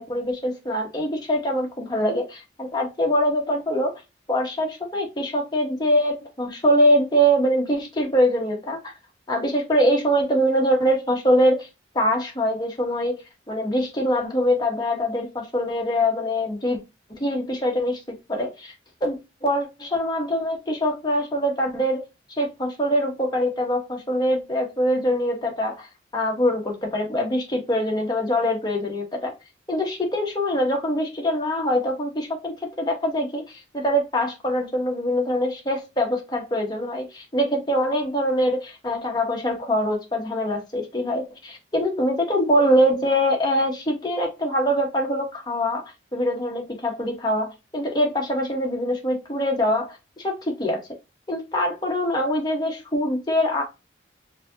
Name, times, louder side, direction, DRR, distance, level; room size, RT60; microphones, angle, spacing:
voice 1, 0.0-3.9 4.3-8.9 9.3-11.7 11.9-16.8 17.1-18.7 19.0-22.0 22.4-25.9 26.1-29.3 29.7-45.8 46.1-50.8 51.3-53.6, equal, 20° left, 1.1 m, -23 dB
4.8 x 2.8 x 2.6 m
head